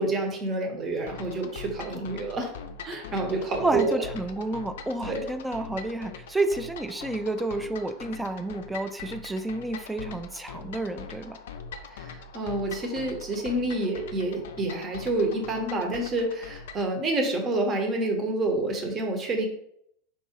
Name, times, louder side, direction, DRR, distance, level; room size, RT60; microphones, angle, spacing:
voice 1, 0.0-2.5 2.8-4.0 5.0-5.3 11.9-19.5, right 2 dB, 30° right, 2 dB, 1.1 m, -28 dB
sound 1, 1.1-16.9, left 5 dB, 65° left, 0.4 m, -42 dB
voice 2, 3.6-11.4, right 2 dB, 10° right, 9 dB, 0.4 m, -30 dB
4.8 x 2.6 x 3.0 m, 0.72 s
figure-of-eight pair, 85°, 0 cm